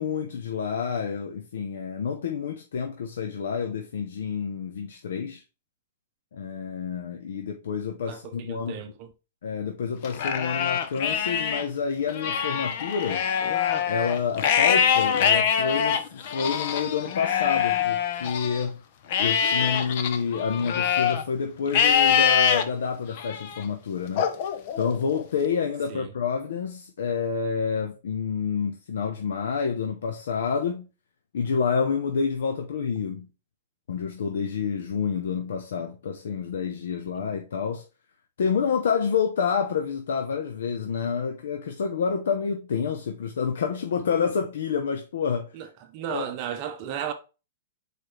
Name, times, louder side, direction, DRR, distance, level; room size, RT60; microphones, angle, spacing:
voice 1, 0.0-5.4 6.3-8.8 9.4-13.3 13.8-18.8 19.2-24.3 24.8-30.9 31.3-33.3 33.9-37.8 38.4-45.5 46.1-46.3, left 6 dB, 80° left, 0.9 m, -28 dB
voice 2, 8.1-9.1 25.9-26.1 37.2-37.3 45.5-47.1, right 9 dB, 35° right, 0.7 m, -35 dB
Livestock farm animals working animals, 10.0-11.6 12.1-18.6 19.1-21.2 21.7-22.6 23.2-23.6 24.2-25.2, left 8 dB, 40° left, 0.8 m, -24 dB
6.7 x 4.6 x 3.2 m
hypercardioid pair, 170°, 0 cm